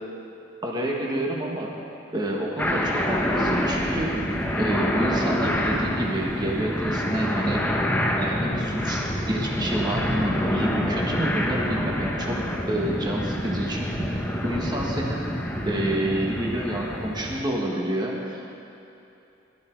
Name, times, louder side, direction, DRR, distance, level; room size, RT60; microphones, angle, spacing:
voice 1, 0.6-1.7 2.1-4.1 4.6-7.7 8.2-12.4 12.7-14.1 14.4-15.2 15.6-18.5, right 1 dB, 20° right, -2 dB, 1.5 m, -28 dB
sound 1, 2.6-17.4, equal, 10° left, 1.1 m, -27 dB
19.5 x 12.5 x 4.7 m, 2.8 s
head